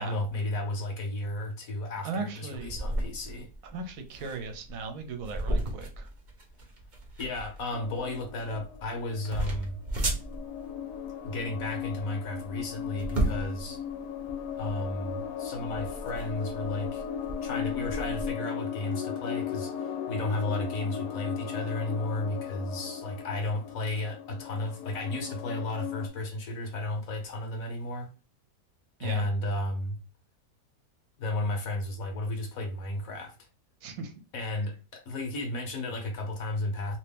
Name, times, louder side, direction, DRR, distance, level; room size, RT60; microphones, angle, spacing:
voice 1, 0.0-3.5 7.2-9.8 11.2-13.8 14.6-17.0 17.4-28.1 29.0-30.0 31.2-33.4 34.3-37.0, left 2 dB, 65° left, 1.2 m, -33 dB
voice 2, 2.0-2.7 3.6-6.1 29.0-29.3 33.8-34.1, right 4 dB, 65° right, 1.0 m, -37 dB
sound 1, 2.6-18.3, right 1 dB, 40° right, 0.8 m, -35 dB
sound 2, 7.7-9.6 10.1-26.1, left 8 dB, 90° left, 1.2 m, -37 dB
2.8 x 2.8 x 3.5 m
omnidirectional pair, 1.7 m